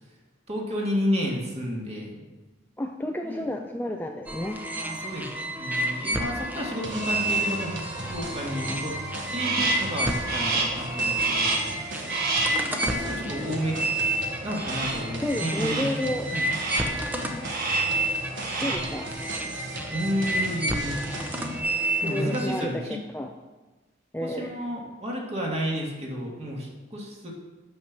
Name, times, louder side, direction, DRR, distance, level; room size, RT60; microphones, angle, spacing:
voice 1, 0.5-2.2 3.2-3.7 4.8-5.3 5.6-7.8 8.1-8.9 9.3-11.9 12.5-13.8 14.4-16.5 18.6-18.7 19.9-21.0 22.0-23.0 24.2-27.3, equal, 35° right, -2 dB, 2.2 m, -31 dB
voice 2, 2.8-4.6 15.2-16.3 18.6-19.1 22.1-22.8 23.1-23.3 24.1-24.5, left 1 dB, 10° left, 3 dB, 0.5 m, -30 dB
sound 1, 4.3-22.6, right 1 dB, 10° right, 0.8 m, -30 dB
sound 2, 6.8-21.6, right 2 dB, 75° right, 1.4 m, -38 dB
Crow, 9.4-9.9 10.3-10.8 11.2-11.8 12.1-12.7 14.6-15.1 15.5-16.0 16.4-17.0 17.4-18.0 18.3-18.9, right 3 dB, 55° right, 1.5 m, -29 dB
9.3 x 6.8 x 6.1 m, 1.2 s
head